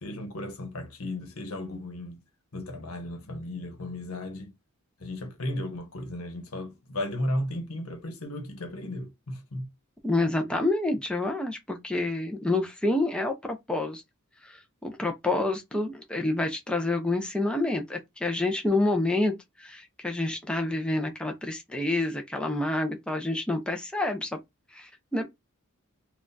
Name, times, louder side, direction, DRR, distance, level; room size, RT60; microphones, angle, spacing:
voice 1, 0.0-2.2 2.5-4.5 5.0-9.7, left 1 dB, 75° left, 1.0 m, -35 dB
voice 2, 10.0-14.0 14.4-24.3 24.7-25.3, left 2 dB, 5° left, 0.6 m, -28 dB
4.1 x 2.4 x 2.6 m
head